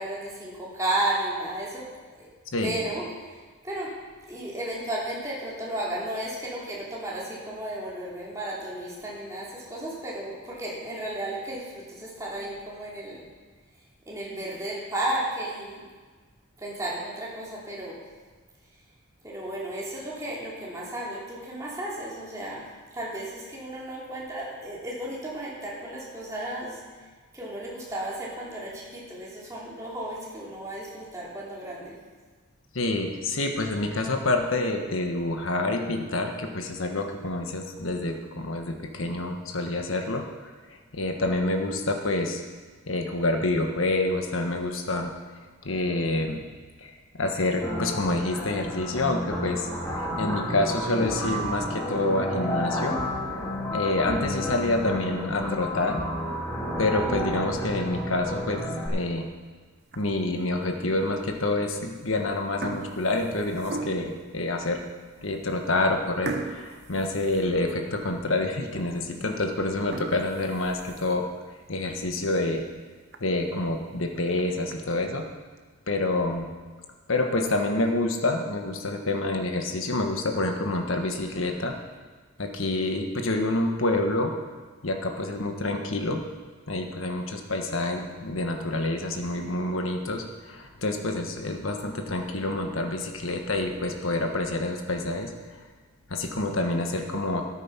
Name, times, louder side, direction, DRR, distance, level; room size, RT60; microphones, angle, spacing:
voice 1, 0.0-2.3 2.6-3.4 3.6-4.0 4.3-13.3 14.1-15.9 16.6-18.1 19.2-27.1 27.3-32.0, right 1 dB, 15° right, -6 dB, 3.0 m, -34 dB
voice 2, 32.7-40.2 40.9-42.4 42.9-45.1 45.6-46.4 46.8-46.9 47.2-49.7 50.0-53.0 53.7-56.0 56.8-59.3 59.9-64.8 65.2-71.3 71.7-72.6 73.2-75.3 75.9-76.5 77.1-81.7 82.4-84.3 84.8-86.2 86.7-95.3 96.1-97.4, left 2 dB, 70° left, 4 dB, 1.4 m, -27 dB
sound 1, 47.6-58.9, equal, 10° left, 2.7 m, -31 dB
sound 2, 59.8-60.3 60.9-61.0 61.9-62.1 62.4-64.3 64.9-65.0 65.3-65.4 66.2-68.0 68.4-68.5 69.0-69.1 69.7-71.3 71.8-71.9 72.3-72.4 72.7-72.8 73.1-73.2 74.1-74.7, right 3 dB, 50° right, 0.9 m, -38 dB
13.5 x 9.1 x 5.8 m, 1.4 s
head